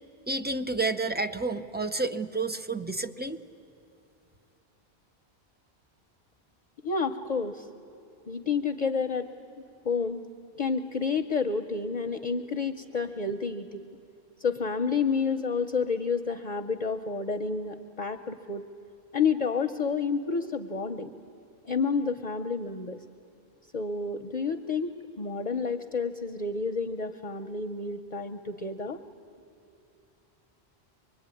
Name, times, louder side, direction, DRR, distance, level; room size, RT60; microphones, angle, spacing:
voice 1, 0.3-3.4, right 3 dB, 15° right, 8 dB, 0.4 m, -30 dB
voice 2, 6.8-7.7 8.3-9.3 9.8-10.2 10.6-13.8 14.4-18.6 19.1-21.1 21.7-23.0 23.7-29.0, left 5 dB, 45° left, 7 dB, 0.8 m, -30 dB
25.0 x 22.5 x 9.7 m, 2.7 s
omnidirectional pair, 1.1 m